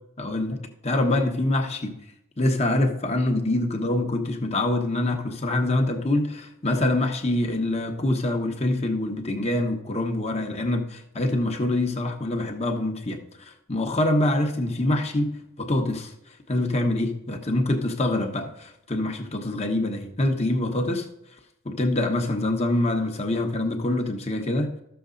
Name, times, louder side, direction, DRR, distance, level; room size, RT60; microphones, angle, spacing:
voice 1, 0.2-2.0 2.4-16.1 16.5-21.1 21.6-24.7, left 1 dB, 30° left, 1.1 m, -25 dB
13.0 x 7.0 x 3.9 m
head